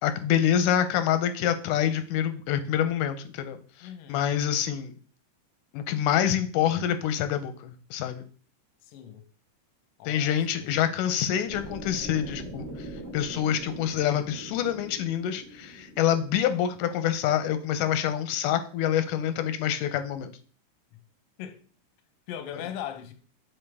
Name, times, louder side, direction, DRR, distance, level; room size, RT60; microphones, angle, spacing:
voice 1, 0.0-4.9 5.7-8.2 10.1-12.7 13.1-20.3 22.5-22.6, left 10 dB, 90° left, 2.2 m, -26 dB
voice 2, 3.8-4.3 8.8-9.2 10.0-10.9 21.4-21.6 22.3-23.1, left 10 dB, 75° left, 1.4 m, -39 dB
sound 1, 11.5-17.6, equal, 35° right, 0.7 m, -42 dB
7.1 x 3.8 x 3.4 m
omnidirectional pair, 3.5 m